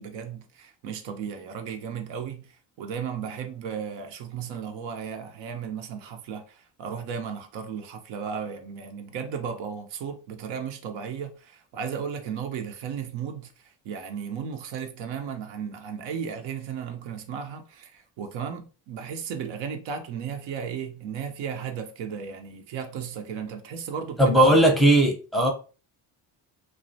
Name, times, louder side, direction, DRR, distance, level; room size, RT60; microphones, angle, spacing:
voice 1, 0.0-24.7, right 7 dB, 75° right, 0.6 m, -35 dB
voice 2, 24.2-25.5, right 1 dB, ahead, 0.6 m, -18 dB
2.3 x 2.1 x 2.6 m
supercardioid pair, 85°, 47 cm